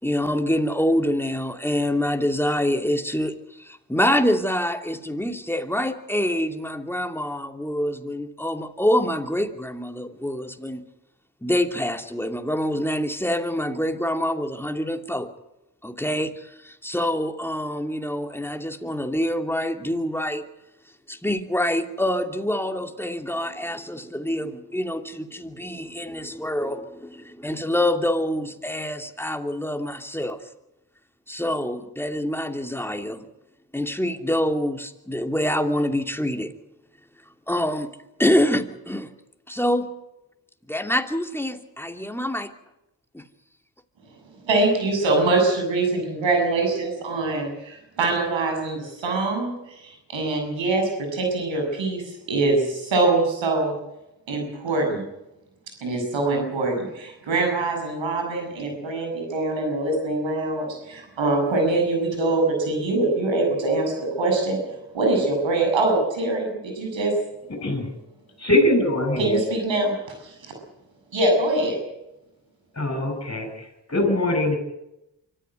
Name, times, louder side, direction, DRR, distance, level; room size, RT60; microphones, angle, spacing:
voice 1, 0.0-10.8 11.4-15.3 15.8-20.5 21.1-30.4 31.3-33.2 33.7-36.5 37.5-37.9 38.2-39.1 39.5-39.9 40.7-42.5 43.1-43.3, left 1 dB, 5° left, 5 dB, 2.7 m, -26 dB
voice 2, 44.4-53.8 54.3-55.1 55.8-64.6 64.9-67.1 69.2-69.9 70.2-70.5 71.1-71.8, right 2 dB, 90° right, 3 dB, 7.1 m, -23 dB
voice 3, 67.5-67.9 68.4-69.4 72.7-74.6, left 1 dB, 30° left, 5 dB, 7.8 m, -22 dB
24.5 x 14.5 x 9.3 m, 0.91 s
supercardioid pair, 40°, 44 cm